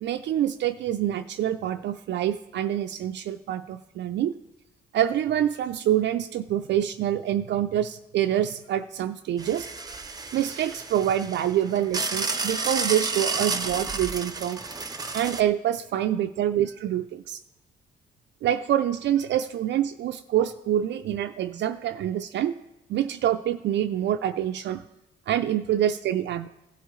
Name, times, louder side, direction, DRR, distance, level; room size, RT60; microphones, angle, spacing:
voice 1, 0.0-4.3 4.9-9.7 10.3-14.6 15.1-17.4 18.4-22.5 22.9-24.8 25.3-26.5, right 11 dB, 65° right, 7 dB, 0.4 m, -26 dB
sound 1, 9.4-15.4, right 3 dB, 20° right, 0.7 m, -31 dB
16.0 x 8.1 x 3.1 m, 0.98 s
cardioid pair, 90°, 20 cm